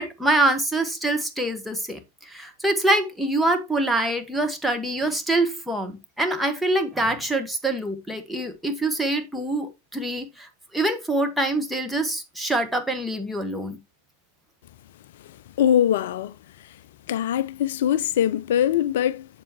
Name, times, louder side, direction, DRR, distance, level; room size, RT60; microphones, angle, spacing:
voice 1, 0.0-13.8, right 1 dB, ahead, 1.3 m, -25 dB
voice 2, 15.6-16.3 17.1-19.3, left 10 dB, 55° left, 0.4 m, -22 dB
7.5 x 6.9 x 3.0 m
figure-of-eight pair, 90°, 0 cm